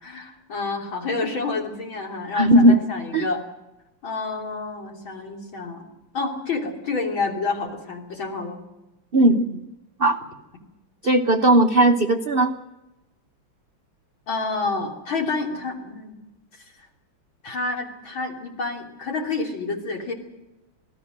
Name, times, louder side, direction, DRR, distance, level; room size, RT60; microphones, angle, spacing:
voice 1, 0.0-3.4 4.0-5.9 6.1-8.6 14.3-16.1 17.4-20.1, left 3 dB, 70° left, 1 dB, 4.0 m, -29 dB
voice 2, 2.3-2.8 3.1-3.3 9.1-9.7 10.0-10.2 11.0-12.5, right 1 dB, 65° right, 6 dB, 0.5 m, -17 dB
26.0 x 17.5 x 6.5 m, 1.0 s
omnidirectional pair, 2.2 m